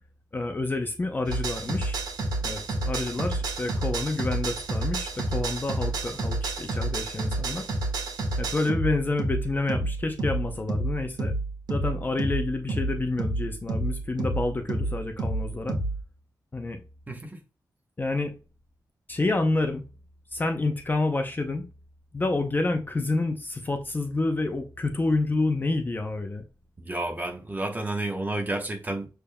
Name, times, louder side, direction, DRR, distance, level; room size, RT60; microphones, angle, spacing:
voice 1, 0.3-2.0 2.4-7.7 8.4-11.3 11.7-15.8 16.5-16.8 18.0-18.3 19.1-19.8 20.3-21.7 22.1-26.4, left 2 dB, 25° left, 0.6 m, -28 dB
sound 1, 1.2-16.0, right 2 dB, 90° right, 1.4 m, -29 dB
voice 2, 17.1-17.4 26.8-29.1, right 2 dB, 25° right, 1.2 m, -31 dB
6.8 x 3.4 x 2.2 m
wide cardioid pair, 135°, 7 cm